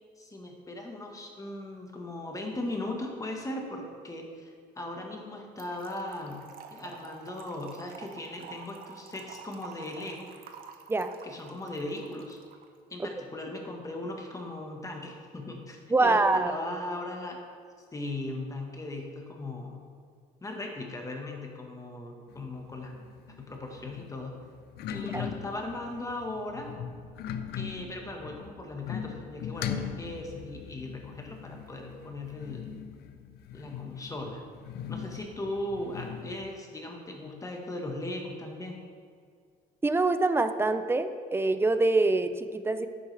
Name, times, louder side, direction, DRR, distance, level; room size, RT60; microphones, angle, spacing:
voice 1, 0.2-6.4 6.7-10.3 11.2-12.4 12.9-17.4 17.9-19.8 20.4-22.9 23.4-24.4 24.9-26.7 27.6-32.7 33.5-34.4 34.9-38.8, left 2 dB, 20° left, 1 dB, 1.5 m, -38 dB
Trickle dribble / Fill (with liquid), 5.6-12.7, right 6 dB, 60° right, 0.9 m, -48 dB
voice 2, 15.9-16.5 25.1-25.3 39.8-42.9, right 3 dB, 15° right, 10 dB, 0.5 m, -25 dB
sound 1, 22.3-36.5, left 8 dB, 70° left, 0.6 m, -40 dB
10.0 x 8.0 x 3.4 m, 2.1 s
cardioid pair, 110°, 17 cm